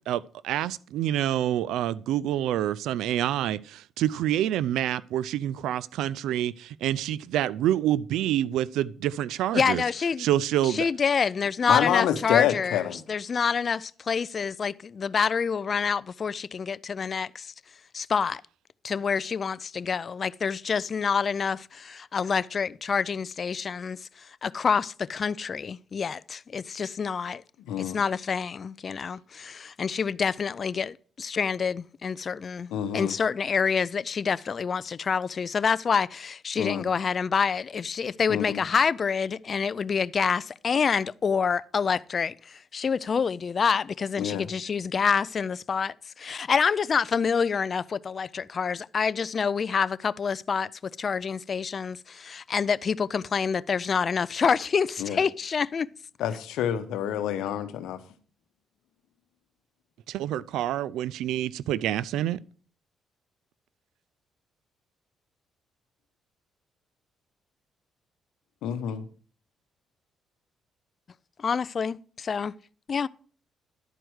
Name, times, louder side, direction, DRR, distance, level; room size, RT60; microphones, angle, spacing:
voice 1, 0.1-9.8 10.2-10.9 60.1-62.4, right 12 dB, 85° right, 0.4 m, -27 dB
voice 2, 9.5-10.3 10.6-17.5 17.9-18.4 18.8-27.4 27.8-55.9 71.4-72.5 72.9-73.1, left 6 dB, 45° left, 0.3 m, -27 dB
voice 3, 11.7-13.0 27.7-28.0 32.7-33.1 36.6-36.9 38.3-38.6 44.2-44.5 55.0-55.2 56.2-58.0 68.6-69.1, left 10 dB, 90° left, 0.9 m, -27 dB
11.0 x 4.6 x 6.2 m
cardioid pair, 90°, 0 cm